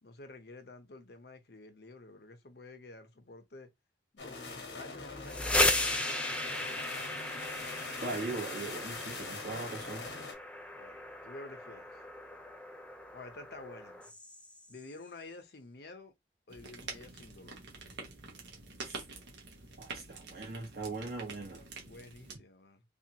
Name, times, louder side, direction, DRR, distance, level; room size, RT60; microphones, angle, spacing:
voice 1, 0.0-3.7 4.1-6.2 10.7-12.0 13.1-14.2 14.7-16.1 16.5-17.6 21.5-22.8, left 2 dB, 65° left, 0.8 m, -50 dB
sound 1, 4.2-10.3, left 4 dB, 80° left, 1.1 m, -43 dB
sound 2, 5.1-14.8, left 1 dB, 5° left, 0.5 m, -36 dB
voice 2, 8.0-10.1 18.8-19.0 19.8-21.6, right 3 dB, 60° right, 1.6 m, -40 dB
sound 3, 16.5-22.3, right 4 dB, 80° right, 1.0 m, -47 dB
3.5 x 2.5 x 2.8 m
head